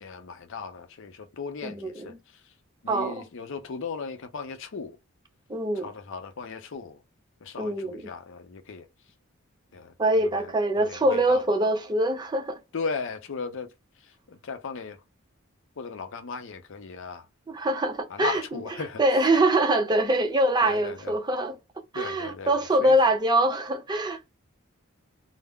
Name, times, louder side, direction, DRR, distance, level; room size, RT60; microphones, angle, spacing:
voice 1, 0.0-2.1 2.8-4.9 5.8-7.0 7.4-8.8 9.7-9.9 10.2-10.3 10.8-11.4 12.7-13.7 14.4-15.0 15.8-17.2 18.1-19.0 20.6-21.1 21.9-22.5 22.8-23.0, left 4 dB, 65° left, 0.6 m, -36 dB
voice 2, 1.6-2.2 2.9-3.3 5.5-5.9 7.6-8.1 10.0-12.6 17.5-21.6 21.9-24.3, right 1 dB, 20° right, 0.5 m, -24 dB
3.5 x 2.0 x 2.2 m
head